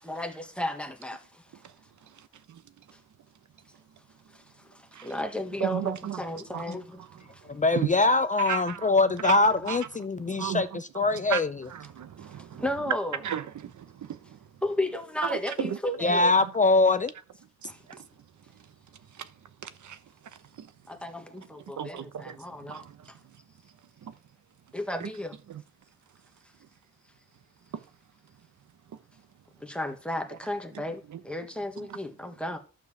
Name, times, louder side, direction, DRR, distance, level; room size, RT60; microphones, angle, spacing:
voice 1, 0.0-1.4 4.3-4.4 4.9-7.0 12.4-13.2 14.6-16.3 20.9-22.8 24.7-25.4 29.6-32.6, left 1 dB, 5° left, 1.4 m, -33 dB
voice 2, 5.6-6.3 6.5-6.7 7.0-7.9 8.4-8.9 9.2-9.4 9.7-9.8 10.3-10.8 11.1-11.4 11.7-12.7 13.2-14.4 15.3-15.8 16.1-16.5 17.6-18.0 18.6-18.7 19.1-19.3 19.6-20.0 20.6-20.7 21.6-23.1 24.0-24.1 25.0-25.1 25.5-25.6 27.7-27.8 30.7-30.8 31.1-31.2 31.8-32.0, right 9 dB, 75° right, 1.0 m, -35 dB
voice 3, 7.5-11.5 16.0-17.1, left 3 dB, 25° left, 0.5 m, -23 dB
12.0 x 4.8 x 7.3 m
wide cardioid pair, 155°, 30 cm